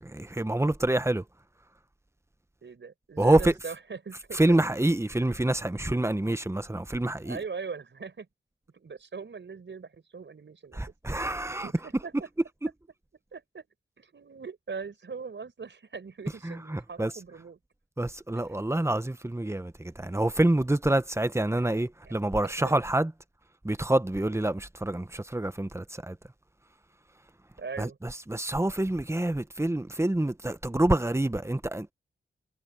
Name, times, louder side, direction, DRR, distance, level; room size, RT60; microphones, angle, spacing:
voice 1, 0.0-1.2 3.2-3.5 4.3-7.4 10.7-11.7 16.4-17.1 18.0-23.1 23.6-26.2 27.8-31.9, right 1 dB, 15° right, 1.3 m, -27 dB
voice 2, 2.6-4.6 7.2-8.3 8.7-10.8 11.6-12.3 13.3-13.6 14.0-17.6 18.4-18.6 21.5-21.7 22.1-22.2 22.6-22.7 24.2-24.4 27.6-28.0, right 5 dB, 65° right, 5.5 m, -41 dB
cardioid pair, 50°, 21 cm